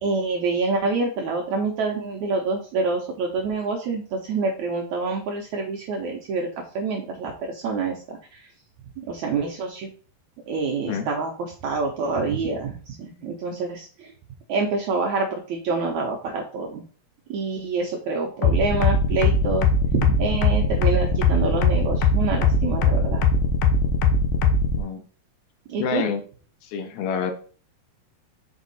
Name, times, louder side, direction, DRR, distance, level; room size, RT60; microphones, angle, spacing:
voice 1, 0.0-6.5 6.7-8.5 9.0-9.9 10.5-14.1 14.5-16.8 17.3-23.3 25.7-26.0, right 4 dB, 70° right, 0 dB, 1.8 m, -27 dB
sound 1, 18.4-24.8, left 4 dB, 70° left, 2.0 m, -19 dB
voice 2, 25.8-26.2 26.6-27.3, left 6 dB, 90° left, 7 dB, 2.9 m, -27 dB
6.2 x 4.7 x 4.0 m, 0.40 s
omnidirectional pair, 4.3 m